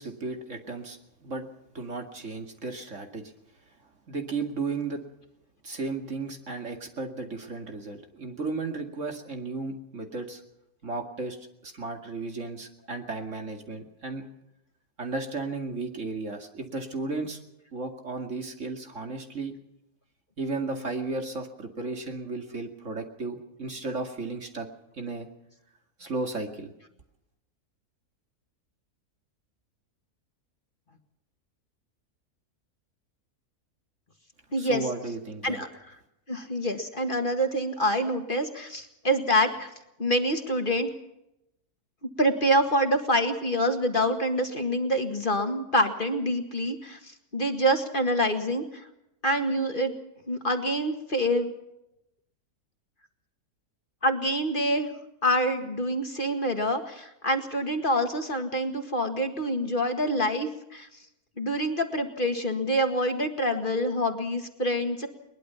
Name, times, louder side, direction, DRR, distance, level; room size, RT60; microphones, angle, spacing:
voice 1, 0.0-1.5 1.7-3.3 4.1-5.0 5.6-10.4 10.8-11.4 11.6-14.2 15.0-17.4 17.7-19.5 20.4-24.7 24.9-25.3 26.0-26.7 34.6-35.6, right 3 dB, 55° right, 4 dB, 2.6 m, -34 dB
voice 2, 34.5-34.9 35.4-35.7 36.3-39.7 40.0-40.9 42.2-48.9 49.2-49.9 50.3-51.5 54.0-54.9 55.2-60.9 61.4-65.1, equal, 35° left, 5 dB, 2.0 m, -26 dB
21.5 x 21.0 x 5.8 m, 0.85 s
omnidirectional pair, 1.6 m